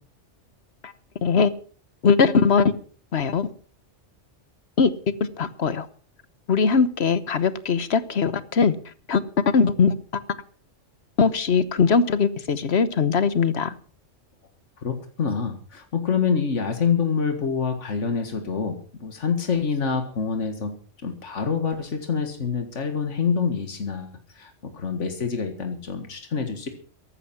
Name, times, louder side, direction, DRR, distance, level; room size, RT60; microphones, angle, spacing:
voice 1, 1.2-1.5 2.0-2.7 3.1-3.5 4.8-4.9 5.2-5.9 6.5-8.7 9.1-9.2 9.5-9.9 11.2-13.7, left 5 dB, 65° left, 1.3 m, -20 dB
voice 2, 14.8-20.7 21.0-26.7, left 6 dB, 80° left, 2.1 m, -26 dB
14.5 x 12.0 x 6.0 m
omnidirectional pair, 1.2 m